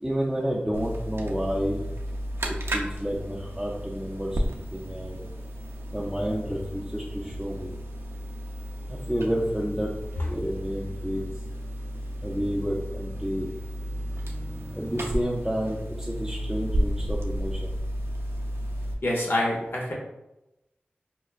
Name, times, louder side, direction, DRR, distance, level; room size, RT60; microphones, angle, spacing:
voice 1, 0.0-1.8 2.5-5.2 5.9-7.7 9.1-9.9 10.2-11.3 12.2-13.5 14.7-17.7, equal, 10° right, -4 dB, 0.5 m, -30 dB
sound 1, 0.7-18.9, equal, 90° right, 0.4 m, -33 dB
voice 2, 19.0-19.9, left 1 dB, 70° left, -3 dB, 0.8 m, -26 dB
5.4 x 2.2 x 2.4 m, 0.92 s
wide cardioid pair, 60°, 4 cm